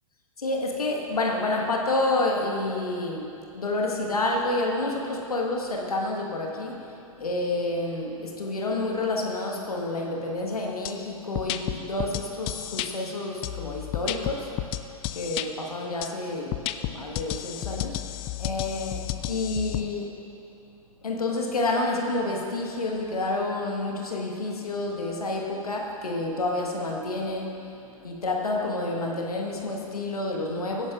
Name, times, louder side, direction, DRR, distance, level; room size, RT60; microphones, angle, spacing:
voice 1, 0.4-6.9 7.2-14.7 15.1-16.6 16.8-18.0 18.4-20.1 21.0-30.9, left 2 dB, 85° left, 0 dB, 1.6 m, -29 dB
sound 1, 10.8-10.9 11.3-12.9 13.4-15.5 16.0-16.1 16.5-19.8, left 14 dB, 30° left, 0.4 m, -32 dB
17.0 x 9.7 x 2.5 m, 2.7 s
hypercardioid pair, 110°, 19 cm